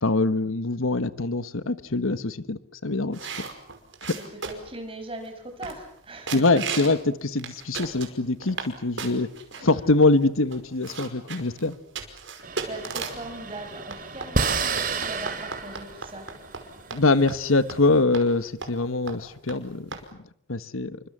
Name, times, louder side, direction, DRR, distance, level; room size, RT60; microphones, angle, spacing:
voice 1, 0.0-3.2 6.3-9.3 9.6-11.8 16.9-19.9 20.5-21.0, left 2 dB, 85° left, 13 dB, 1.4 m, -23 dB
sound 1, 3.1-4.8 5.3-5.4 5.6-6.0 6.3-7.0 7.4-8.7 9.0-9.6 10.2-10.3 10.5-13.3 13.9-16.6 16.9-17.0 17.3-17.4 17.7-17.8 18.1-18.3 18.6-18.8 19.1-19.2 19.5-19.6 19.9-20.0, right 5 dB, 65° right, 5.3 m, -35 dB
voice 2, 4.1-6.9 9.6-9.7 12.7-16.2, right 2 dB, 25° right, 5 dB, 5.7 m, -40 dB
sound 2, 12.4-17.9, right 4 dB, 40° right, 3.2 m, -31 dB
29.0 x 25.0 x 7.5 m, 0.69 s
head